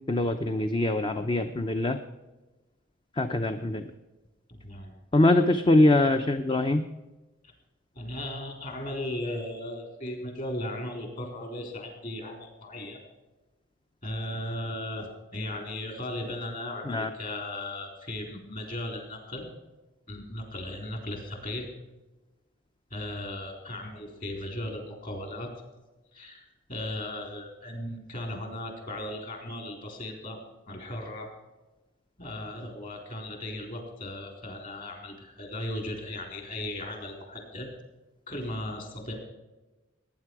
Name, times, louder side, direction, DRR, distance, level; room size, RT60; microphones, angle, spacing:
voice 1, 0.1-2.0 3.2-3.9 5.1-6.8 16.9-17.1, left 2 dB, 25° left, 7 dB, 0.6 m, -23 dB
voice 2, 4.5-5.0 7.9-13.0 14.0-19.4 20.1-21.7 22.9-25.5 26.1-30.4 30.7-31.3 32.2-37.7 38.3-39.1, left 1 dB, 45° left, 2 dB, 4.1 m, -36 dB
19.0 x 9.8 x 4.8 m, 1.1 s
head